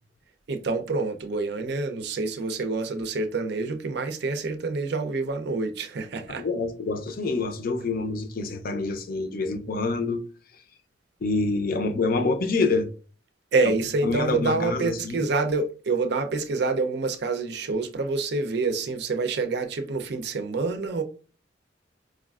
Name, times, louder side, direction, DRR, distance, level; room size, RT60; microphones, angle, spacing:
voice 1, 0.5-6.5 13.5-21.0, right 3 dB, 60° right, 0.5 m, -27 dB
voice 2, 6.4-10.2 11.2-12.9 14.0-15.3, left 3 dB, 50° left, 0.5 m, -26 dB
4.6 x 2.4 x 2.3 m
head